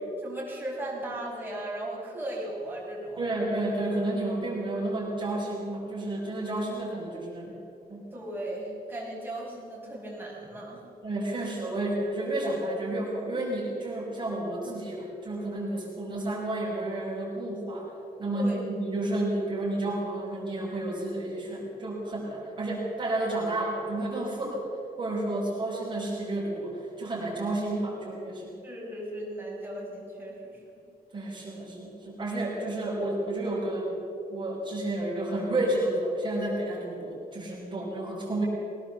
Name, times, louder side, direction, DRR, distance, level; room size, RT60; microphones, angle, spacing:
voice 1, 0.2-3.3 8.1-10.8 18.3-18.6 28.6-30.6, right 1 dB, 15° right, -4 dB, 5.7 m, -37 dB
voice 2, 3.2-7.6 7.9-8.1 11.0-17.9 18.2-24.6 25.0-28.6 31.1-34.0 34.3-38.4, right 1 dB, 30° right, -5 dB, 5.5 m, -31 dB
22.0 x 18.0 x 7.2 m, 2.7 s
wide cardioid pair, 175°, 16 cm